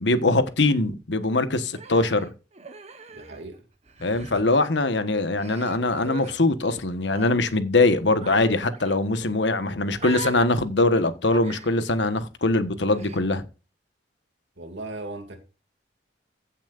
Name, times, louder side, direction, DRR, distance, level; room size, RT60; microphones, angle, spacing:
voice 1, 0.0-2.3 4.0-13.5, left 2 dB, 75° left, 1.3 m, -22 dB
Human voice, 1.7-3.6 3.9-4.4 5.1-6.3 7.0-7.3 8.2-8.4 8.7-9.0 10.0-10.5 11.3-11.8 12.9-13.2, right 4 dB, 40° right, 1.1 m, -39 dB
voice 2, 3.1-3.6 14.6-15.4, right 2 dB, 85° right, 2.3 m, -37 dB
15.5 x 7.3 x 2.5 m
head